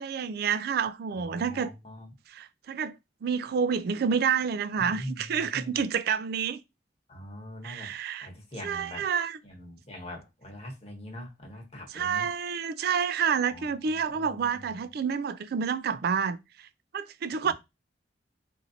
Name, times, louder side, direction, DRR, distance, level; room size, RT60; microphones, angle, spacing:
voice 1, 0.0-1.7 2.3-2.9 3.2-6.6 7.6-8.3 8.6-9.4 11.9-16.4 16.9-17.5, right 6 dB, 60° right, 0.4 m, -29 dB
voice 2, 1.1-2.1 4.8-5.8 7.1-7.9 8.2-9.1 9.4-12.3 13.5-14.7 17.4-17.5, left 1 dB, 35° left, 1.1 m, -43 dB
4.4 x 2.6 x 2.7 m
head